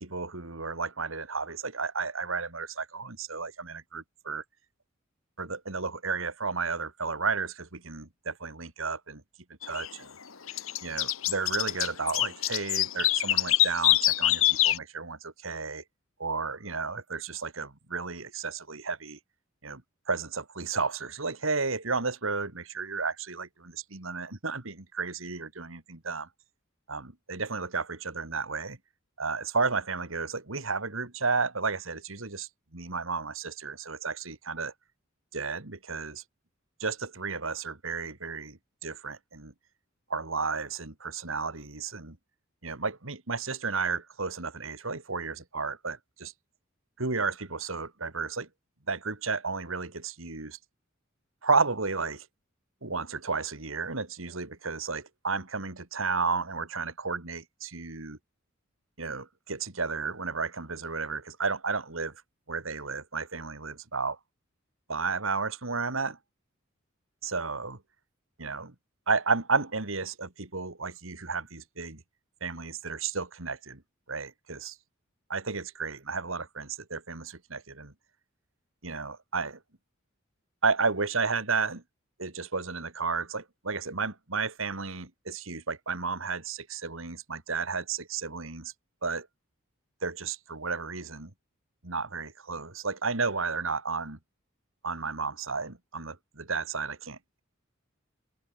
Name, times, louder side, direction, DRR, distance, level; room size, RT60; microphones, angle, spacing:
voice 1, 0.0-4.4 5.4-9.2 9.6-10.1 10.8-15.8 16.2-19.2 19.6-19.8 20.1-26.3 26.9-28.8 29.2-34.7 35.3-36.2 36.8-39.5 40.1-42.2 42.6-46.3 47.0-48.5 48.9-50.6 51.4-52.3 52.8-58.2 59.0-62.2 62.5-64.2 64.9-66.2 67.2-67.8 68.4-68.7 69.1-72.0 72.4-73.8 74.1-74.8 75.3-77.9 78.8-79.6 80.6-81.8 82.2-88.7 89.0-89.3 90.0-91.3 91.8-94.2 94.8-97.4, right 4 dB, 70° right, 2.6 m, -32 dB
sound 1, 9.6-9.9 10.5-14.8, left 15 dB, 75° left, 1.7 m, -25 dB
open air
head